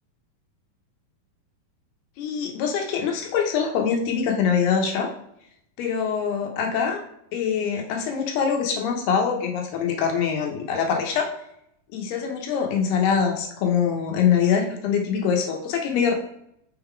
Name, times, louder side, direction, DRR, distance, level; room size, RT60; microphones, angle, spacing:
voice 1, 2.2-5.1 5.8-7.0 7.3-11.3 11.9-16.1, left 7 dB, 90° left, 2 dB, 3.1 m, -24 dB
6.4 x 3.9 x 4.5 m, 0.74 s
omnidirectional pair, 4.4 m